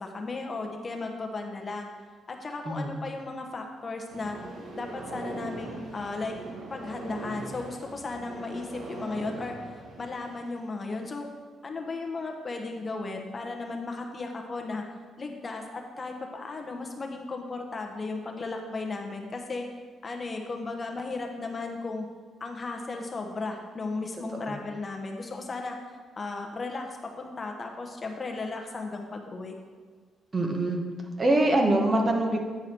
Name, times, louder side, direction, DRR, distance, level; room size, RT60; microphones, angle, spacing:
voice 1, 0.0-1.9 2.3-4.4 4.7-6.3 6.7-9.6 10.0-11.3 11.6-14.8 15.2-19.7 20.0-22.1 22.4-25.8 26.2-29.5, left 3 dB, 35° left, 2 dB, 0.9 m, -35 dB
sound 1, 4.1-10.5, right 2 dB, 70° right, 1.4 m, -41 dB
voice 2, 30.3-30.8 31.2-32.4, right 1 dB, 30° right, 2 dB, 1.1 m, -24 dB
9.2 x 4.8 x 4.4 m, 1.5 s
cardioid pair, 90°, 0 cm